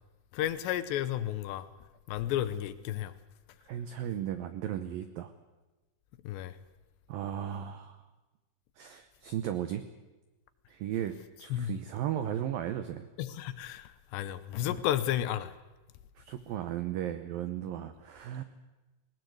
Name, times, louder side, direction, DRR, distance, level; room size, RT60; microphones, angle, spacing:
voice 1, 0.3-1.7 2.1-3.1 6.2-6.5 11.5-11.7 13.2-15.5, left 12 dB, 75° left, 2.9 m, -32 dB
voice 2, 3.7-5.3 7.1-8.0 8.8-9.8 10.7-13.1 16.2-18.4, right 10 dB, 90° right, 2.0 m, -35 dB
20.0 x 18.5 x 7.9 m
omnidirectional pair, 5.5 m